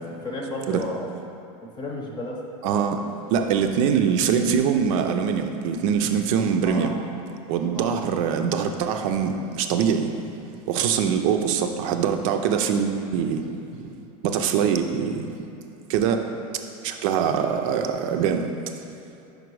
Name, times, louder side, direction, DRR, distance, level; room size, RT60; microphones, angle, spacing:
voice 1, 0.0-1.1 1.6-2.4 2.7-3.0 3.3-3.5 6.6-6.9 7.7-7.9, left 2 dB, 25° left, -1 dB, 0.8 m, -33 dB
voice 2, 2.6-3.0 3.3-6.9 7.5-10.1 10.7-13.4 14.2-15.3 15.9-16.2 16.8-18.4, right 7 dB, 65° right, 6 dB, 0.6 m, -23 dB
5.3 x 5.2 x 4.7 m, 2.8 s
supercardioid pair, 135°, 18 cm